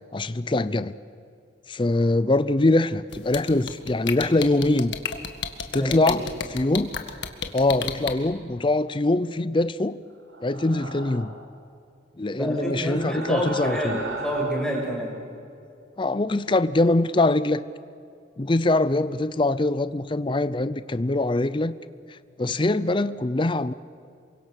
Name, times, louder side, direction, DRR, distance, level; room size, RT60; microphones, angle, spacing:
voice 1, 0.1-0.9 1.7-5.0 5.7-6.9 7.5-10.0 10.4-11.3 12.2-14.0 16.0-17.6 18.4-21.7 22.1-23.7, left 2 dB, 25° left, 0.5 m, -23 dB
sound 1, 3.1-8.1, left 7 dB, 70° left, 1.8 m, -30 dB
voice 2, 5.8-6.2 12.3-15.1, equal, 5° left, 5.9 m, -28 dB
sound 2, 10.3-11.5 12.7-14.9, right 3 dB, 75° right, 3.1 m, -37 dB
28.0 x 24.0 x 6.6 m
head